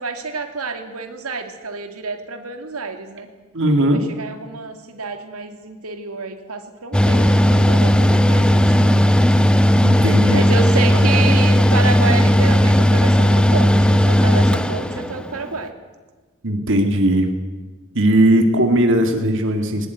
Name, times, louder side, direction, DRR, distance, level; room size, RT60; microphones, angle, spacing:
voice 1, 0.0-3.3 3.9-9.0 10.3-15.7, right 4 dB, 85° right, 6 dB, 2.6 m, -29 dB
voice 2, 3.5-4.0 9.8-10.4 16.4-17.3 17.9-19.9, right 1 dB, 60° right, 5 dB, 2.2 m, -17 dB
Mechanical fan, 6.9-15.4, equal, 5° left, 0.9 m, -15 dB
20.5 x 20.0 x 9.4 m, 1.3 s
head